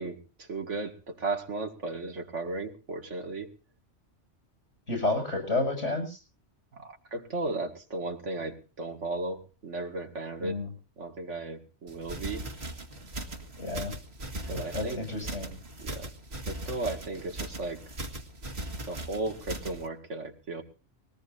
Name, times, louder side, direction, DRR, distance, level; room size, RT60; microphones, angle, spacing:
voice 1, 0.0-3.5 6.8-10.6 11.0-12.5 14.5-15.0 15.8-16.1 16.5-17.8 18.9-20.6, right 2 dB, 85° right, 5 dB, 2.4 m, -35 dB
voice 2, 4.9-6.2 10.4-10.7 13.6-13.9 14.7-15.5, left 2 dB, 80° left, 3 dB, 7.4 m, -30 dB
sound 1, 11.9-19.9, right 1 dB, 60° right, 2.2 m, -39 dB
21.5 x 18.5 x 2.7 m, 0.34 s
omnidirectional pair, 1.2 m